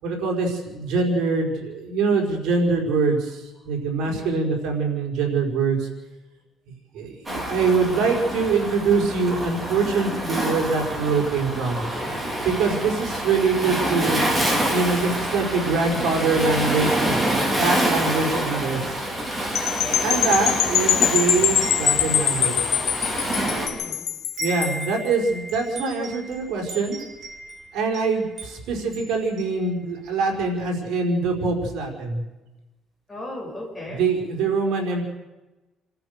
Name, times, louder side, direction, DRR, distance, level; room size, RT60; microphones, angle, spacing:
voice 1, 0.0-5.9 6.9-11.8 12.4-19.1 20.0-22.8 24.4-27.0 27.7-32.2 33.9-35.0, right 4 dB, 75° right, 1 dB, 5.0 m, -24 dB
Waves surf, 7.3-23.7, right 1 dB, 10° right, 3.9 m, -27 dB
sound 1, 19.5-24.8, left 10 dB, 60° left, 1.3 m, -23 dB
Wind chime, 20.9-23.9 24.2-30.1, right 2 dB, 35° right, 4.9 m, -39 dB
voice 2, 23.4-24.0 33.1-34.0, left 1 dB, 10° left, -2 dB, 6.8 m, -37 dB
29.0 x 14.0 x 6.8 m, 1.1 s
cardioid pair, 170°, 0 cm